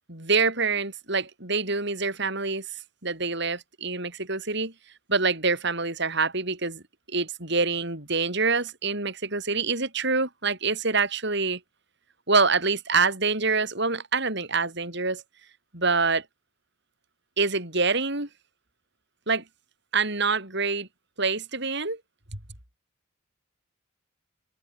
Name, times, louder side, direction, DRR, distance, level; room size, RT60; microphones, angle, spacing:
voice 1, 0.1-2.7 3.0-4.7 5.1-6.8 7.1-11.6 12.3-15.2 15.7-16.2 17.4-18.3 19.3-19.4 19.9-20.9 21.2-22.0, right 4 dB, 55° right, 7.7 m, -26 dB
head